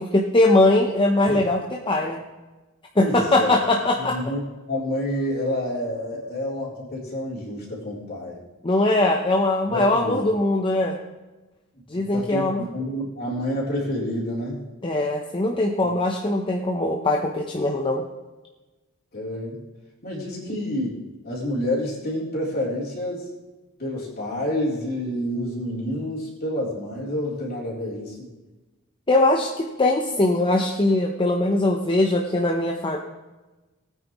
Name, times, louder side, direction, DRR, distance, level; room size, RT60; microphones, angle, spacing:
voice 1, 0.0-2.2 3.0-4.2 8.6-11.0 11.9-12.6 14.8-18.0 29.1-33.0, left 2 dB, 25° left, 1 dB, 0.8 m, -21 dB
voice 2, 3.0-3.7 4.0-4.4 4.7-8.4 9.7-10.3 11.9-14.6 15.8-15.9 19.1-19.6 20.0-21.0 21.2-23.3 23.8-28.2, left 1 dB, 45° left, -4 dB, 3.6 m, -28 dB
19.0 x 9.3 x 3.1 m, 1.2 s
head